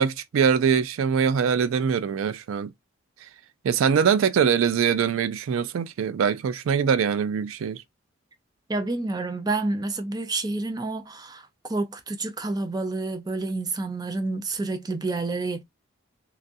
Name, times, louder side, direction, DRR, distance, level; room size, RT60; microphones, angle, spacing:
voice 1, 0.0-2.7 3.6-7.8, right 7 dB, 85° right, 0.3 m, -23 dB
voice 2, 8.7-15.6, right 3 dB, 20° right, 0.4 m, -29 dB
3.0 x 2.4 x 2.6 m
head